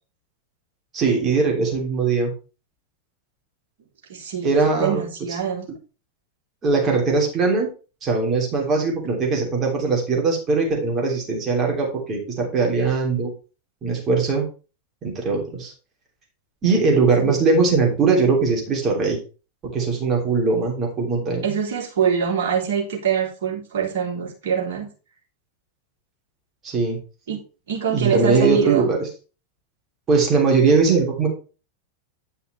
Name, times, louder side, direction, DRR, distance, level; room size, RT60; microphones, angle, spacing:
voice 1, 0.9-2.3 4.4-5.0 6.6-7.7 8.0-13.3 13.8-14.5 15.0-15.7 16.6-19.2 19.6-21.4 26.6-27.0 27.9-29.1 30.1-31.3, right 4 dB, 25° right, 0 dB, 3.0 m, -20 dB
voice 2, 4.1-5.7 17.2-17.3 21.4-24.9 27.3-27.4 27.7-28.9, right 7 dB, 55° right, -2 dB, 3.1 m, -24 dB
10.5 x 5.6 x 3.3 m, 0.34 s
figure-of-eight pair, 90°, 0 cm